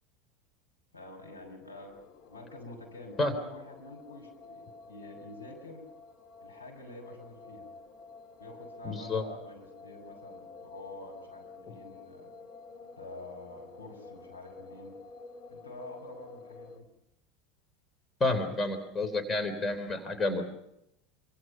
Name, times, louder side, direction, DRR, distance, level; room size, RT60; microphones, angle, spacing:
voice 1, 0.9-5.9 6.4-7.7 8.4-12.3 13.0-15.0 15.5-16.8, left 2 dB, 90° left, 0 dB, 6.3 m, -47 dB
sound 1, 1.7-16.8, left 3 dB, 45° left, 2.5 m, -50 dB
voice 2, 8.8-9.2 18.2-20.4, left 2 dB, 20° left, 8 dB, 3.8 m, -29 dB
27.0 x 25.0 x 5.8 m, 0.83 s
figure-of-eight pair, 75°, 0 cm